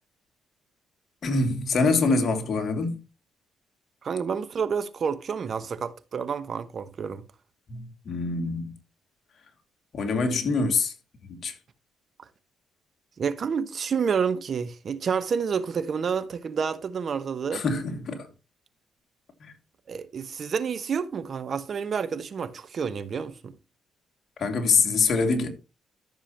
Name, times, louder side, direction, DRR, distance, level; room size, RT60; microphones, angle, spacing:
voice 1, 1.2-3.0 7.7-8.7 9.9-10.9 11.3-11.5 17.5-18.3 19.4-19.5 24.4-25.5, left 4 dB, 55° left, 2.4 m, -25 dB
voice 2, 4.0-7.2 13.2-17.6 19.9-23.5, right 6 dB, 50° right, 1.1 m, -29 dB
13.5 x 6.9 x 3.0 m
cardioid pair, 90°, 0 cm